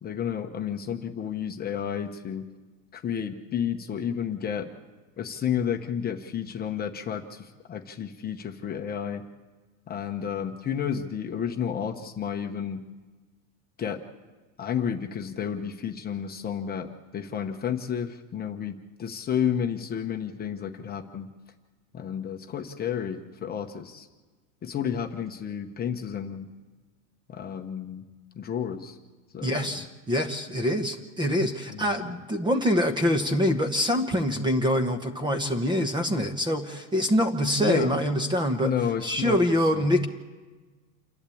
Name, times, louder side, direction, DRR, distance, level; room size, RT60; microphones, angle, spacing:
voice 1, 0.0-2.5 2.9-4.7 5.2-9.2 9.9-12.8 13.8-14.0 14.6-21.3 21.9-24.1 24.6-26.5 27.3-28.0 28.3-29.0 29.3-29.9 31.7-32.2 37.6-38.0 38.6-40.0, left 8 dB, 20° left, 4 dB, 1.0 m, -31 dB
voice 2, 29.4-38.7 39.0-40.1, equal, 10° right, 7 dB, 1.0 m, -25 dB
28.0 x 11.5 x 8.5 m, 1.3 s
supercardioid pair, 155°, 44 cm